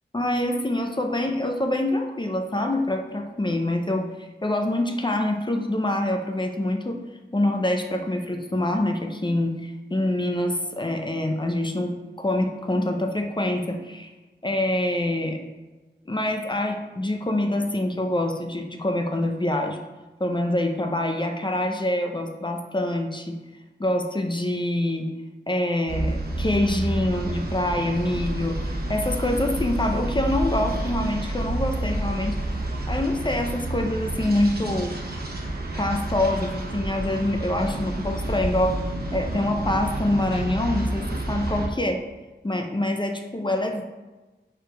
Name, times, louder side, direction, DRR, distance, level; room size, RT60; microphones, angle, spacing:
voice 1, 0.1-7.0 7.3-14.1 14.4-15.4 16.1-19.8 20.2-23.4 23.8-25.1 25.5-32.4 32.9-35.0 35.8-38.8 39.1-42.0 42.4-43.8, left 1 dB, 25° left, 3 dB, 0.6 m, -25 dB
sound 1, 25.9-41.7, right 1 dB, 55° right, 1.2 m, -29 dB
4.9 x 4.7 x 5.1 m, 1.2 s
wide cardioid pair, 85°, 19 cm